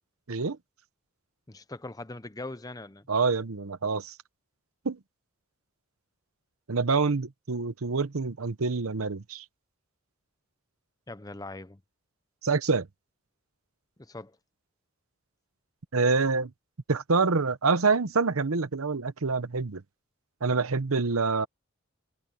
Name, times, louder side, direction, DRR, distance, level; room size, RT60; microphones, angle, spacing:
voice 1, 1.5-3.1 11.1-11.8 14.0-14.4, left 2 dB, 15° left, 0.7 m, -41 dB
voice 2, 3.1-4.1 4.8-5.0 6.7-9.4 12.4-12.9 15.9-16.5 16.9-19.8 20.4-21.5, right 4 dB, 85° right, 0.9 m, -26 dB
head